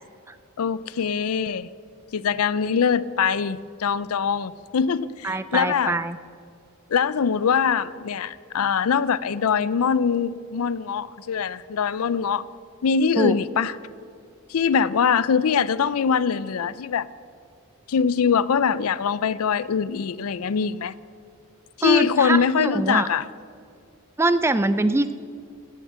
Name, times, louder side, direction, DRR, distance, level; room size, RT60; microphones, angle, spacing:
voice 1, 0.6-1.7 2.1-6.0 6.9-12.4 12.8-13.7 14.5-17.1 17.9-20.9 21.8-23.3, left 6 dB, 75° left, 17 dB, 0.4 m, -23 dB
voice 2, 5.2-6.2 13.2-13.3 21.8-23.1 24.2-25.1, right 2 dB, 10° right, 12 dB, 0.3 m, -23 dB
17.5 x 6.6 x 7.4 m, 2.3 s
head